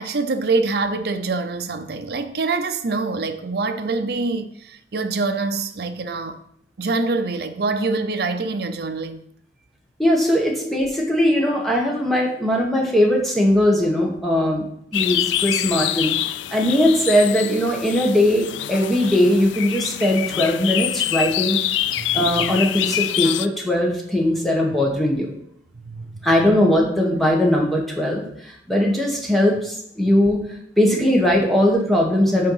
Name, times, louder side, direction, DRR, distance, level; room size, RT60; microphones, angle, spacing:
voice 1, 0.0-6.4 6.8-9.2 22.0-22.5 25.7-26.1, right 3 dB, 60° right, 0.6 m, -25 dB
voice 2, 10.0-16.1 16.5-21.6 22.1-25.3 26.2-28.2 28.7-30.4 30.8-32.5, left 1 dB, ahead, 1.2 m, -19 dB
sound 1, 14.9-23.5, left 12 dB, 80° left, 0.3 m, -25 dB
6.4 x 4.5 x 5.7 m
head